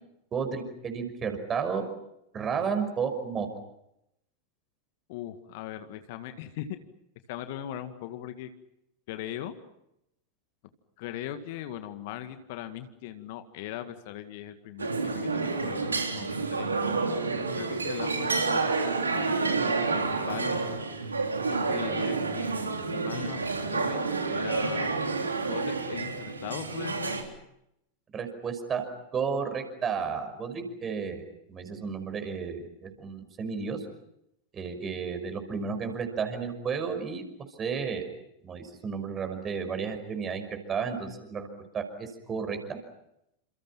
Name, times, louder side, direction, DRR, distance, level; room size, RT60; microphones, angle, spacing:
voice 1, 0.3-1.9 2.3-3.5 28.1-31.2 31.5-33.8 34.5-37.2 37.6-38.0 38.4-40.4 40.7-41.5 41.7-42.8, right 6 dB, 25° right, 7 dB, 5.8 m, -32 dB
voice 2, 5.1-6.7 7.3-8.5 9.1-9.6 11.0-16.7 17.4-20.6 21.5-22.5 22.9-23.4 23.7-24.9 25.5-27.2, left 12 dB, 50° left, 9 dB, 2.0 m, -40 dB
sound 1, 14.8-27.2, right 4 dB, 75° right, 3.5 m, -29 dB
30.0 x 27.5 x 5.8 m, 0.81 s
figure-of-eight pair, 90°, 0 cm